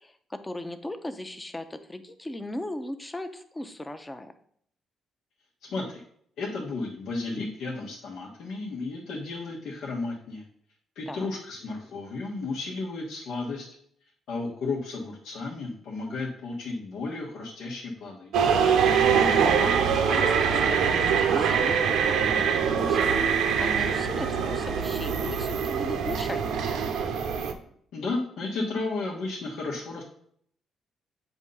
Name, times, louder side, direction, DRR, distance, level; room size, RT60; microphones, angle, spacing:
voice 1, 0.0-4.3 11.1-11.3 19.0-26.8, left 1 dB, 15° left, 8 dB, 0.7 m, -37 dB
voice 2, 5.6-6.0 6.4-10.4 10.9-13.7 14.3-18.3 27.9-30.0, left 3 dB, 75° left, -4 dB, 1.2 m, -33 dB
sound 1, 18.3-27.5, right 7 dB, 80° right, 0.7 m, -24 dB
8.1 x 2.7 x 5.4 m, 0.64 s
cardioid pair, 90°, 0 cm